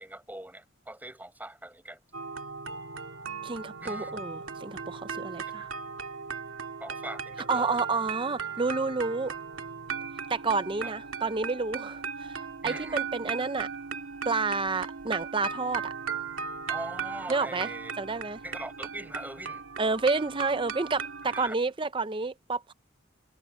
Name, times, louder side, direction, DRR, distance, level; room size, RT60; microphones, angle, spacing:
voice 1, 0.0-2.0 3.8-4.2 5.5-5.7 6.8-7.8 10.8-10.9 12.6-13.1 16.7-17.9 18.4-19.6 21.2-21.5, right 1 dB, 10° right, 7.0 m, -41 dB
sound 1, 2.1-21.5, right 6 dB, 80° right, 2.3 m, -37 dB
voice 2, 3.4-5.7 7.5-9.3 10.3-13.7 14.2-15.9 17.3-17.7 18.0-18.4 19.8-22.7, right 4 dB, 25° right, 0.6 m, -30 dB
head